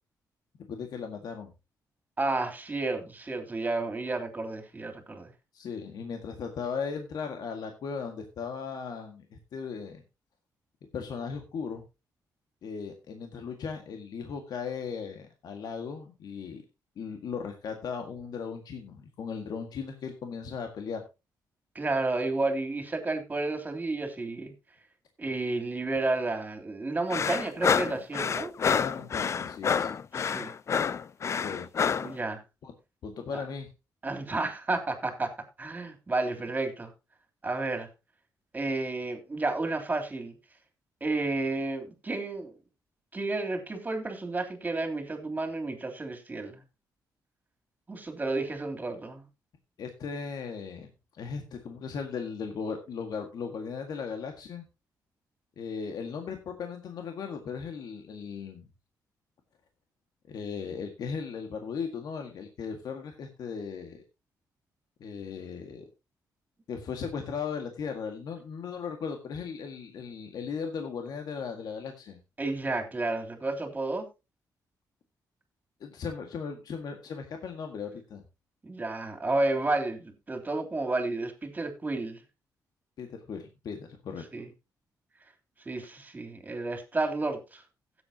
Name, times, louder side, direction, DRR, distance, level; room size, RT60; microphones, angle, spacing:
voice 1, 0.7-1.5 5.5-10.0 10.9-11.8 12.6-16.6 17.0-21.0 28.7-29.9 31.2-31.9 32.6-32.7 33.0-33.7 49.8-54.7 55.6-58.7 60.3-64.0 65.0-65.9 66.7-72.2 75.8-78.2 83.0-84.3, left 6 dB, 70° left, 1.8 m, -37 dB
voice 2, 2.2-5.3 21.7-24.5 25.2-28.5 30.1-30.5 32.0-32.4 33.3-33.4 34.0-35.3 35.6-36.9 37.4-37.9 38.5-40.3 41.0-42.5 43.1-46.6 47.9-49.3 72.4-74.0 78.6-82.2 84.3-84.5 85.6-87.6, right 2 dB, 25° right, 3.2 m, -31 dB
sound 1, 27.1-32.1, left 6 dB, 40° left, 0.4 m, -28 dB
16.5 x 8.1 x 2.8 m
cardioid pair, 105°, 7 cm